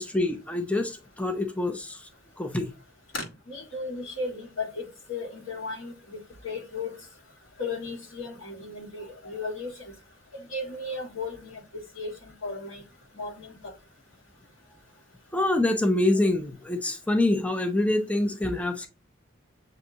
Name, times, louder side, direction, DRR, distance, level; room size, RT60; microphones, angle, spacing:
voice 1, 0.0-2.1 2.4-2.7 15.3-18.9, left 2 dB, 5° left, 0.5 m, -26 dB
voice 2, 3.1-6.2 6.4-6.9 7.6-9.9 10.3-12.8 13.1-13.7, left 3 dB, 90° left, 1.6 m, -35 dB
7.2 x 2.6 x 2.7 m
head